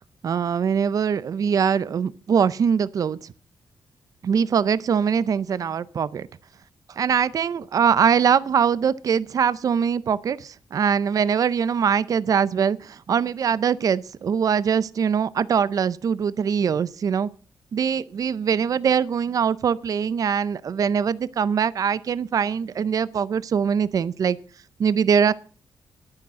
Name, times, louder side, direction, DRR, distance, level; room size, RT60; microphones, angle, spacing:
voice 1, 0.2-3.3 4.2-6.3 7.0-17.3 17.7-24.4 24.8-25.3, right 7 dB, 50° right, 0.5 m, -22 dB
10.0 x 9.7 x 7.6 m
cardioid pair, 115°, 8 cm